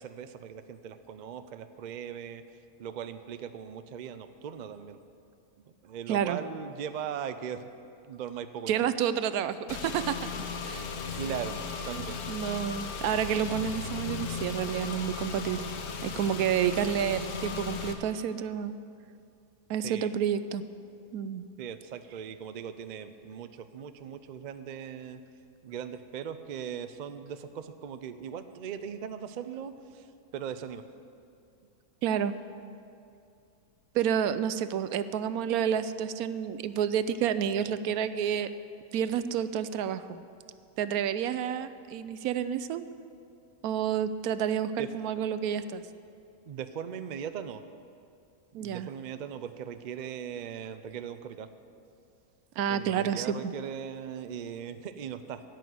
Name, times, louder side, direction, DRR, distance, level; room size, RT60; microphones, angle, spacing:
voice 1, 0.0-2.4 2.8-5.0 5.6-7.7 8.0-8.8 11.2-11.6 11.8-12.2 19.8-20.1 21.6-25.2 25.6-30.1 30.3-30.8 44.8-44.9 46.5-47.6 48.5-51.5 52.7-55.4, right 8 dB, 70° right, 10 dB, 0.4 m, -39 dB
voice 2, 6.1-6.4 8.7-10.1 10.6-10.9 11.9-15.7 16.0-18.8 19.7-20.6 21.1-21.5 32.0-32.3 33.9-38.5 38.9-40.2 40.8-42.8 43.6-45.8 48.5-48.9 52.6-53.4, right 9 dB, 85° right, 13 dB, 1.1 m, -29 dB
Car / Engine, 9.7-17.9, left 5 dB, 90° left, 1.4 m, -36 dB
14.0 x 6.2 x 9.4 m, 2.5 s
omnidirectional pair, 1.5 m